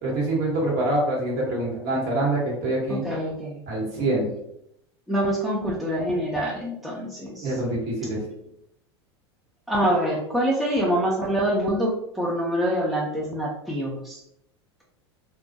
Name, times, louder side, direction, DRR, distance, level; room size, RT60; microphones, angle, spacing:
voice 1, 0.0-3.0 3.7-4.3 7.4-8.2, right 1 dB, 50° right, -3 dB, 1.2 m, -25 dB
voice 2, 3.0-3.6 5.1-7.6 9.7-14.2, equal, ahead, -4 dB, 0.5 m, -25 dB
2.3 x 2.0 x 2.7 m, 0.77 s
hypercardioid pair, 85°, 14 cm